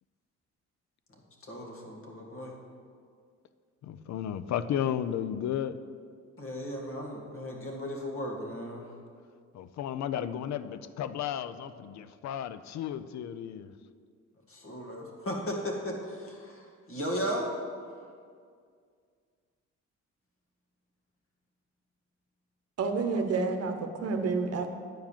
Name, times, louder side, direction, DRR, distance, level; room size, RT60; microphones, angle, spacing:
voice 1, 1.1-2.5 6.4-8.9 14.5-17.5, equal, 45° left, 0 dB, 2.0 m, -36 dB
voice 2, 3.8-5.8 9.5-13.7 23.2-23.3, left 10 dB, 65° left, 14 dB, 0.5 m, -33 dB
voice 3, 22.8-24.7, right 4 dB, 55° right, 6 dB, 0.9 m, -29 dB
9.2 x 4.8 x 7.2 m, 2.1 s
cardioid pair, 90°, 30 cm